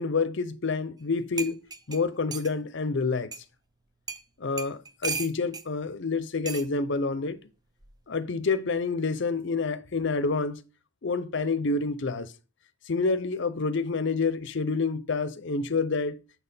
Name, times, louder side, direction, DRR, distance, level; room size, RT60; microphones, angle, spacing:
voice 1, 0.0-1.6 1.9-3.3 4.4-7.4 8.1-10.6 11.0-12.3 12.9-16.2, left 4 dB, 55° left, 0.6 m, -28 dB
sound 1, 1.0-1.1 1.4-2.5 3.3-3.4 4.1-4.2 4.6-5.7 6.5-6.7 7.8-8.1, right 5 dB, 20° right, 0.5 m, -35 dB
7.1 x 4.1 x 5.5 m
head